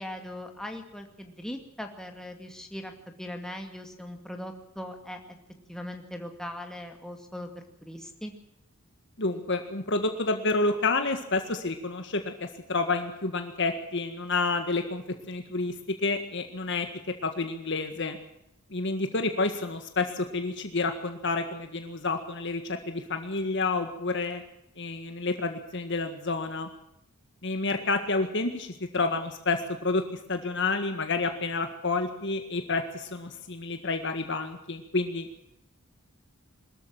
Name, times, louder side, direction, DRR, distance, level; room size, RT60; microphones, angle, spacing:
voice 1, 0.0-2.9 3.2-5.4 5.7-8.3, left 1 dB, 5° left, 3 dB, 2.3 m, -40 dB
voice 2, 9.2-16.9 17.2-18.2 18.7-24.4 24.8-26.7 27.4-30.0 30.3-35.4, left 3 dB, 55° left, 6 dB, 1.7 m, -29 dB
22.5 x 13.5 x 9.0 m, 0.78 s
head